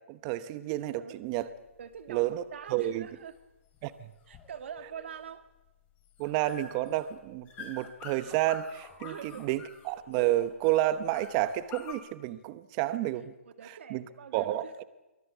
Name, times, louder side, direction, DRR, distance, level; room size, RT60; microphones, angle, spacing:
voice 1, 0.1-1.5 2.1-2.4 2.7-3.1 3.8-4.1 6.2-13.3 13.9-14.0 14.3-14.8, right 14 dB, 25° right, 0.9 m, -30 dB
sound 1, 1.2-11.9, left 6 dB, 20° left, 2.6 m, -49 dB
voice 2, 1.8-3.3 4.3-5.5 9.0-9.5 13.6-14.8, right 8 dB, 55° right, 2.1 m, -44 dB
24.0 x 17.5 x 8.3 m
hypercardioid pair, 155°, 8 cm